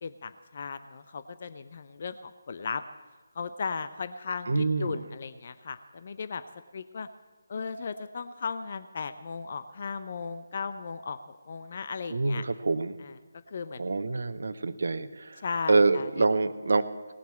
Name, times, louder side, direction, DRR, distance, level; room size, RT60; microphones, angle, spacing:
voice 1, 0.0-2.8 3.3-6.4 6.7-7.1 7.5-11.2 11.5-12.4 13.0-13.1 13.5-13.8 15.4-16.2, left 5 dB, 45° left, 11 dB, 0.7 m, -36 dB
voice 2, 4.5-5.1 12.1-13.0 13.8-15.4 15.7-16.9, right 3 dB, 60° right, 11 dB, 1.0 m, -26 dB
18.5 x 7.6 x 8.4 m, 1.3 s
figure-of-eight pair, 150°, 0 cm